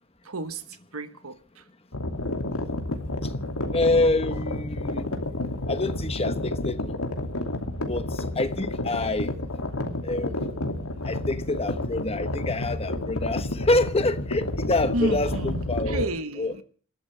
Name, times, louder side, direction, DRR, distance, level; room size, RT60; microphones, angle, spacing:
voice 1, 0.2-1.6 9.7-10.2 14.9-16.6, right 2 dB, 75° right, 1.4 m, -32 dB
sound 1, 1.9-16.0, left 1 dB, 80° left, 2.6 m, -30 dB
voice 2, 3.7-5.1 5.7-7.0 7.9-9.3 10.0-10.5 11.0-16.1 16.4-16.6, left 2 dB, 25° left, 1.2 m, -26 dB
27.5 x 13.5 x 3.4 m
head